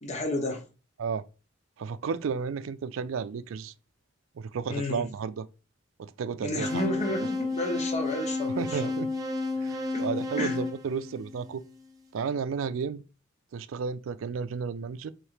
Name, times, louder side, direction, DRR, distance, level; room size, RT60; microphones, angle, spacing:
voice 1, 0.0-0.6 4.7-5.0 6.4-8.9 9.9-10.1 10.4-10.6, left 1 dB, 35° left, 1.0 m, -32 dB
voice 2, 1.8-3.7 4.4-5.5 6.0-6.9 8.6-9.1 9.6-11.6 12.1-13.0 13.5-15.1, right 6 dB, 85° right, 0.4 m, -32 dB
sound 1, 6.6-11.7, left 2 dB, 20° right, 0.7 m, -32 dB
3.3 x 3.1 x 4.7 m
head